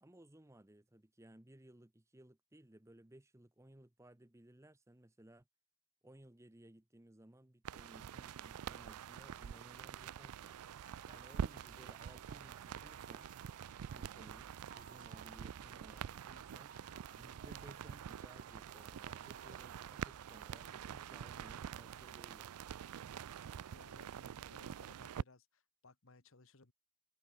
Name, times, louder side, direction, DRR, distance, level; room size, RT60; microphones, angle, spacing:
voice 1, 0.0-5.4 6.0-10.5 11.1-13.3 13.9-16.7 17.2-22.5, right 1 dB, 15° right, 0.8 m, -60 dB
sound 1, 7.6-25.2, right 8 dB, 85° right, 0.4 m, -46 dB
sound 2, 10.8-20.7, right 5 dB, 35° right, 1.6 m, -60 dB
voice 2, 23.7-26.7, left 3 dB, 60° left, 1.4 m, -63 dB
head